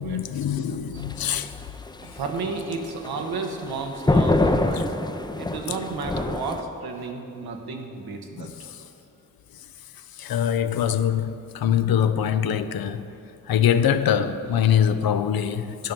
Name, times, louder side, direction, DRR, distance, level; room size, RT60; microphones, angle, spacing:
voice 1, 0.0-1.6 4.7-4.8 8.4-8.9 10.1-13.1 13.5-15.9, left 9 dB, 75° left, 0.6 m, -23 dB
voice 2, 0.5-0.8 2.0-4.9 5.4-8.5, right 4 dB, 85° right, 1.0 m, -32 dB
sound 1, 1.0-6.6, left 2 dB, 10° left, 0.5 m, -25 dB
10.5 x 5.3 x 5.9 m
cardioid pair, 45°, 37 cm